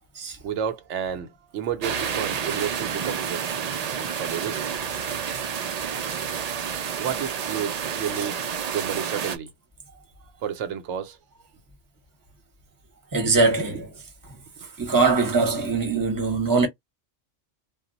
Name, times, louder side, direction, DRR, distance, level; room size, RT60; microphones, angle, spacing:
voice 1, 0.4-3.6 4.0-4.6 7.0-8.5 8.7-9.5 9.9-10.0 10.4-11.2 14.6-14.7, right 8 dB, 80° right, 0.9 m, -31 dB
sound 1, 1.8-9.4, right 7 dB, 60° right, 0.4 m, -29 dB
voice 2, 13.1-13.9 14.8-16.7, right 3 dB, 20° right, 0.8 m, -22 dB
2.2 x 2.1 x 3.8 m
omnidirectional pair, 1.2 m